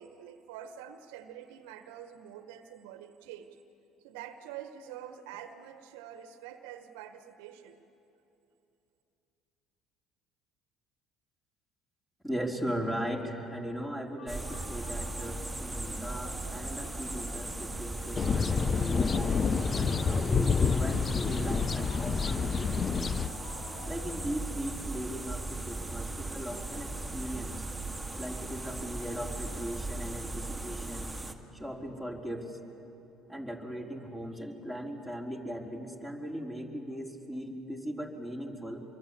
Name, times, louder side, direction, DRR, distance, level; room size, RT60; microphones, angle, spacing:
voice 1, 0.0-3.5 4.0-7.8, right 10 dB, 80° right, 8 dB, 1.3 m, -46 dB
voice 2, 12.2-23.2 23.9-27.6 28.1-31.1 31.5-32.6 33.3-38.8, equal, 10° left, 0 dB, 4.4 m, -38 dB
sound 1, 14.2-24.9, left 4 dB, 75° left, 2.6 m, -52 dB
sound 2, 14.3-31.3, right 2 dB, 10° right, 2.1 m, -38 dB
sound 3, 18.2-23.3, left 5 dB, 35° left, 0.7 m, -28 dB
26.5 x 23.0 x 8.6 m, 2.9 s
hypercardioid pair, 65°, 0 cm